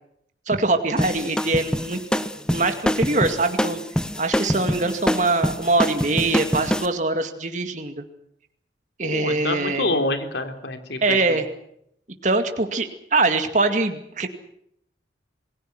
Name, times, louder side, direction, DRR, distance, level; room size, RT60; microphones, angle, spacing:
voice 1, 0.5-2.0 2.5-3.8 4.2-8.0 9.0-10.0 11.0-11.5 12.2-14.3, right 3 dB, 40° right, 6 dB, 2.3 m, -23 dB
sound 1, 1.0-6.9, equal, 5° left, 1.1 m, -25 dB
voice 2, 9.0-11.4, left 2 dB, 70° left, 6 dB, 3.8 m, -27 dB
28.0 x 21.5 x 6.1 m, 0.71 s
head